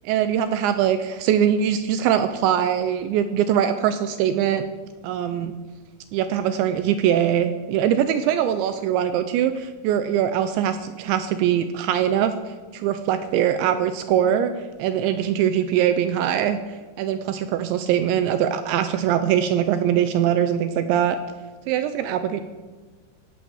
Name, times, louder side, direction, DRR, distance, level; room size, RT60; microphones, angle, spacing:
voice 1, 0.1-4.7 5.0-5.5 6.1-14.5 14.8-16.6 17.0-21.2 21.7-22.4, right 9 dB, 80° right, 10 dB, 2.8 m, -22 dB
17.5 x 8.4 x 7.1 m, 1.3 s
omnidirectional pair, 5.6 m